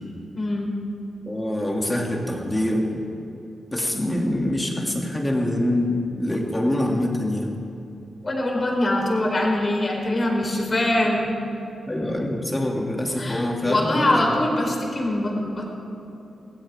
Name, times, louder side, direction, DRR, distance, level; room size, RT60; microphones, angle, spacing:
voice 1, 0.3-0.7 8.2-11.3 13.1-15.7, left 1 dB, 40° left, -1 dB, 4.6 m, -23 dB
voice 2, 1.2-3.0 3.7-7.5 11.9-14.3, left 1 dB, 15° left, -1 dB, 3.0 m, -25 dB
23.0 x 16.0 x 3.9 m, 2.9 s
cardioid pair, 65°, 0 cm